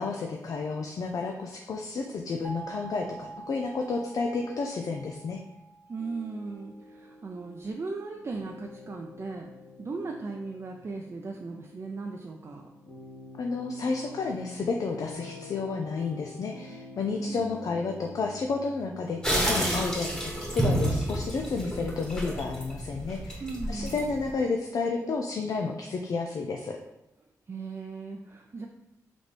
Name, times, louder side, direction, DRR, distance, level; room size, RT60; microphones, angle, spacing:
voice 1, 0.0-5.4 13.4-23.4 23.7-26.8, left 4 dB, 70° left, 2 dB, 0.4 m, -31 dB
sound 1, 2.4-7.1, right 4 dB, 25° right, 1.0 m, -46 dB
voice 2, 5.9-9.5 9.8-12.7 17.1-17.6 23.4-24.0 27.5-28.7, right 3 dB, 45° right, 1 dB, 0.4 m, -37 dB
sound 2, 6.0-21.3, left 1 dB, 90° left, 1.0 m, -47 dB
sound 3, 19.2-24.3, right 1 dB, 10° left, 1.3 m, -30 dB
4.0 x 3.2 x 3.2 m, 0.90 s
cardioid pair, 55°, 6 cm